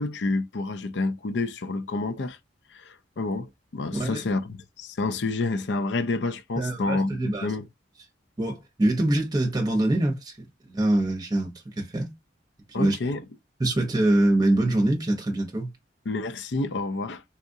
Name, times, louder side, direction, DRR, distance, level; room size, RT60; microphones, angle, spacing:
voice 1, 0.0-2.4 2.7-7.7 12.7-13.2 16.1-17.2, left 3 dB, 70° left, 0.5 m, -29 dB
voice 2, 3.9-4.2 6.6-7.5 8.4-10.4 10.6-12.1 12.7-13.0 13.6-15.7, right 1 dB, 20° right, 0.9 m, -24 dB
4.1 x 2.4 x 2.7 m
head